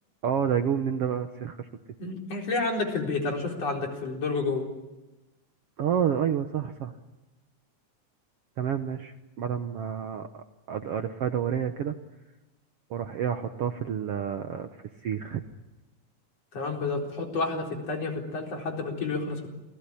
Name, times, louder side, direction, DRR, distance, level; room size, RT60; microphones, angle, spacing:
voice 1, 0.2-1.7 5.8-6.9 8.6-12.0 12.9-14.7 15.0-15.4, right 8 dB, 60° right, 7 dB, 1.7 m, -29 dB
voice 2, 2.0-4.7 16.5-19.5, left 3 dB, 50° left, 1 dB, 5.3 m, -30 dB
28.5 x 20.0 x 10.0 m, 1.0 s
omnidirectional pair, 3.7 m